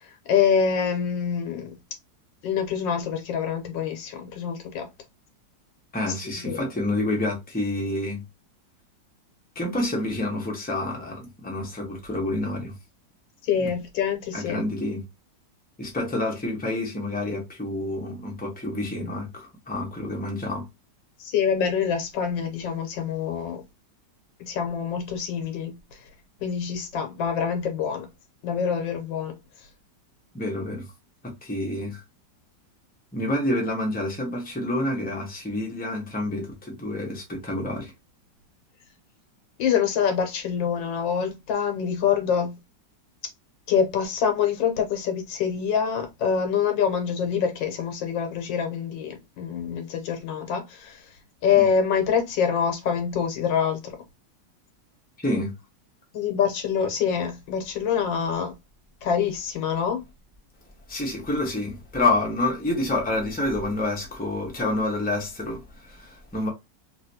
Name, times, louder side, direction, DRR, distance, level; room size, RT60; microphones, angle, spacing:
voice 1, 0.0-1.8 2.4-4.9 6.1-6.6 13.4-14.6 21.2-23.6 24.4-26.0 26.4-28.1 28.4-29.3 39.6-42.5 43.7-51.0 51.4-53.9 56.1-58.5 59.0-60.0, left 7 dB, 90° left, 1.6 m, -25 dB
voice 2, 5.9-8.2 9.5-12.7 13.6-13.7 14.3-15.0 15.8-20.7 30.3-30.9 31.2-32.0 33.1-37.9 51.6-51.7 55.2-55.5 60.9-66.5, left 1 dB, 5° left, 0.8 m, -28 dB
3.1 x 3.0 x 2.7 m
omnidirectional pair, 2.0 m